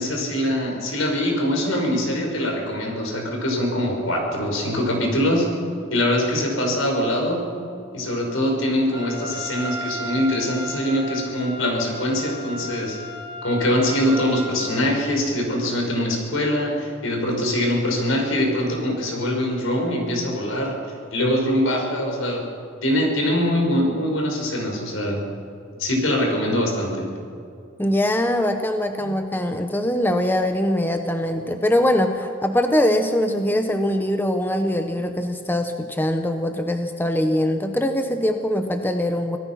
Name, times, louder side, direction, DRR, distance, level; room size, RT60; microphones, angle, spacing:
voice 1, 0.0-5.5 5.9-7.5 7.9-13.0 13.4-20.8 21.1-22.4 22.8-25.2 25.8-27.1, left 1 dB, 75° left, 1 dB, 5.3 m, -23 dB
Trumpet, 8.9-15.0, equal, 25° right, 2.5 m, -35 dB
voice 2, 27.8-39.4, left 1 dB, 10° left, 6 dB, 0.9 m, -22 dB
26.0 x 18.0 x 5.9 m, 2.5 s
head